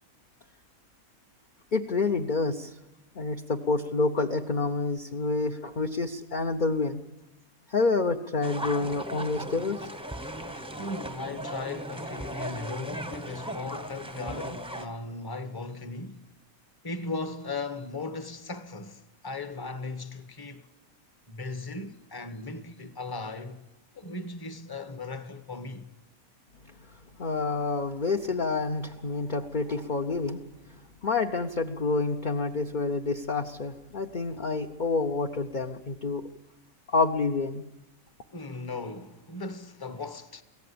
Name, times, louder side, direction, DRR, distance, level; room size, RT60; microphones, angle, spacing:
voice 1, 1.7-2.7 3.2-7.0 7.7-9.9 27.2-30.4 31.0-36.2 36.9-37.6, left 3 dB, 40° left, 0.8 m, -28 dB
sound 1, 8.4-14.9, right 1 dB, 5° right, 0.9 m, -37 dB
voice 2, 10.5-16.2 16.8-20.7 21.3-23.6 23.9-25.9 38.3-40.4, left 3 dB, 15° left, 1.0 m, -37 dB
23.5 x 17.0 x 8.7 m
omnidirectional pair, 1.5 m